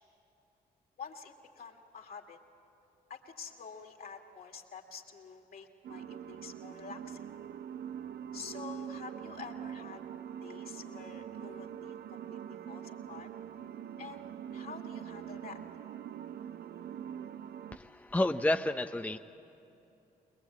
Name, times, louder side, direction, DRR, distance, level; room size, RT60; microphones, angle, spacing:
voice 1, 1.0-2.4 3.1-7.3 8.3-10.0 10.4-13.3 14.0-14.2 14.5-15.6, left 5 dB, 60° left, 2 dB, 2.6 m, -48 dB
sound 1, 5.8-17.8, right 9 dB, 65° right, 0.7 m, -43 dB
voice 2, 17.7-19.2, left 1 dB, 10° left, 6 dB, 0.7 m, -30 dB
22.0 x 21.5 x 8.6 m, 2.9 s
supercardioid pair, 50°, 18 cm